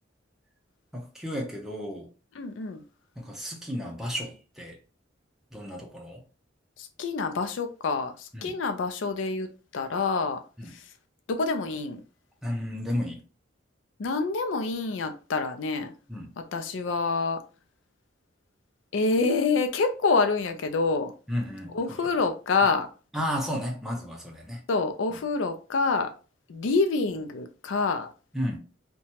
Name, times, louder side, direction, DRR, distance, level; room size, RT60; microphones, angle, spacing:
voice 1, 0.9-2.1 3.2-4.8 5.5-6.2 8.3-8.5 10.6-10.7 12.4-13.2 16.1-16.3 21.3-21.7 23.1-24.6 28.3-28.6, equal, ahead, 0.6 m, -32 dB
voice 2, 2.3-2.8 6.8-10.9 11.3-12.0 14.0-15.9 16.4-17.4 18.9-21.1 21.7-22.9 24.7-26.1 26.5-28.1, left 4 dB, 85° left, 0.4 m, -27 dB
2.8 x 2.2 x 2.8 m
head